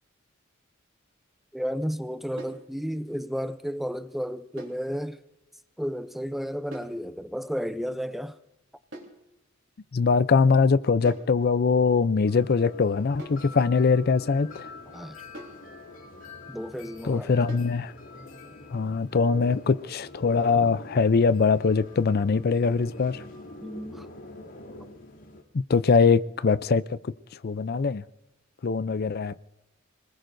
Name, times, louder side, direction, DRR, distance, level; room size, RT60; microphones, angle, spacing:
voice 1, 1.5-5.2 5.8-8.4 14.9-15.2 16.5-17.6 23.6-24.1, equal, ahead, 0.5 m, -33 dB
sound 1, 2.4-2.7 4.6-4.9 6.7-7.0 8.9-9.2 11.1-11.4 13.2-13.5 15.3-15.7 17.5-17.8, right 1 dB, 70° right, 3.6 m, -43 dB
voice 2, 9.9-14.7 17.0-17.9 18.7-23.2 25.7-27.0 27.4-28.0 28.6-29.4, left 5 dB, 50° left, 0.5 m, -22 dB
sound 2, 12.3-25.4, left 2 dB, 70° left, 2.8 m, -45 dB
26.0 x 20.0 x 2.6 m
head